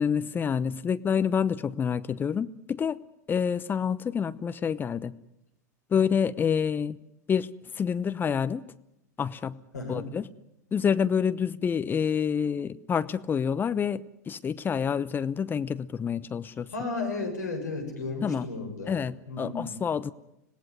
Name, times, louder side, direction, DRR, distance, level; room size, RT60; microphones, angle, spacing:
voice 1, 0.0-3.0 3.3-5.1 5.9-7.0 7.3-7.5 7.8-8.6 9.2-9.6 9.9-10.2 10.7-16.7 18.2-18.5 18.9-20.1, left 7 dB, 20° left, 14 dB, 0.9 m, -27 dB
voice 2, 9.7-10.1 16.7-19.0 19.3-19.7, left 3 dB, 75° left, 5 dB, 6.9 m, -33 dB
26.0 x 18.0 x 9.5 m, 0.87 s
figure-of-eight pair, 90°, 9 cm